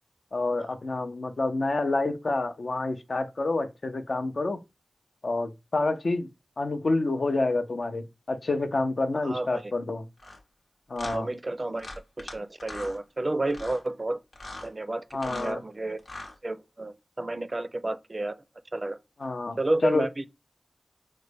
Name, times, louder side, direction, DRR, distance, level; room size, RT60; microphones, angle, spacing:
voice 1, 0.3-4.6 5.2-6.3 6.6-10.1 10.9-11.3 15.1-15.6 19.2-20.1, left 2 dB, 65° left, 0.5 m, -28 dB
sound 1, 10.2-10.4 11.0-11.2 11.8-12.3 12.6-13.0 13.5-13.8 14.3-14.7 15.1-15.5 16.0-16.3, left 2 dB, 85° left, 1.0 m, -40 dB
voice 2, 11.0-14.2 14.6-16.0 16.4-18.3 18.7-19.0 19.6-20.3, right 2 dB, 40° right, 0.4 m, -31 dB
4.9 x 2.2 x 3.3 m
wide cardioid pair, 65°, 0 cm